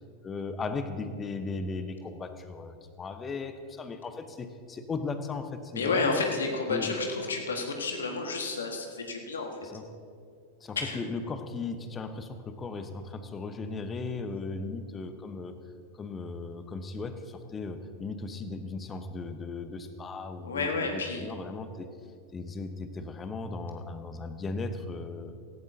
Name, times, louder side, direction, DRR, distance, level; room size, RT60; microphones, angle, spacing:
voice 1, 0.2-6.3 6.7-7.0 9.6-9.8 10.6-15.6 15.9-21.9 22.3-25.3, left 3 dB, 20° left, 9 dB, 1.0 m, -37 dB
voice 2, 5.7-9.5 10.7-11.0 20.4-21.2, left 3 dB, 70° left, 3 dB, 1.6 m, -30 dB
17.5 x 16.0 x 2.8 m, 2.3 s
figure-of-eight pair, 90°, 0 cm